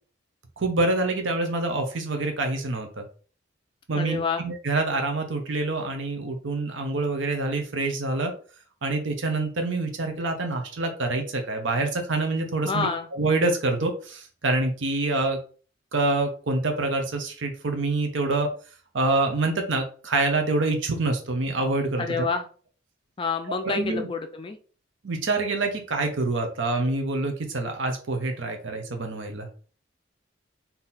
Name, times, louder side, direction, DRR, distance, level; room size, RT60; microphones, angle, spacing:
voice 1, 0.6-3.0 3.9-8.3 8.8-15.4 15.9-18.5 18.9-22.3 23.6-24.1 25.0-29.5, right 2 dB, 80° right, 4 dB, 0.8 m, -26 dB
voice 2, 4.0-4.4 12.6-13.1 22.0-22.4 23.2-24.6, left 5 dB, 25° left, 7 dB, 0.3 m, -28 dB
3.9 x 2.8 x 4.1 m, 0.40 s
head